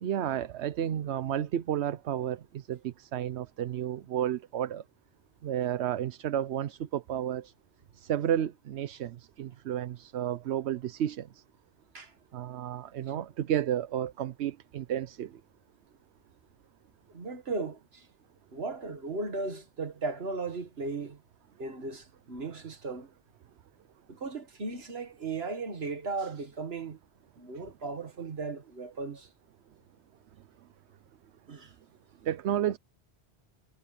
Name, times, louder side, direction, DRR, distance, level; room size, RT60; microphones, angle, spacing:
voice 1, 0.0-4.8 5.4-7.5 8.0-11.4 12.3-15.4 27.5-27.6 32.2-32.8, right 10 dB, 80° right, 1.0 m, -32 dB
voice 2, 17.1-18.1 18.5-21.2 21.6-23.1 24.1-27.0 27.4-29.3 31.5-31.7, right 3 dB, 65° right, 2.0 m, -36 dB
omnidirectional pair, 1.1 m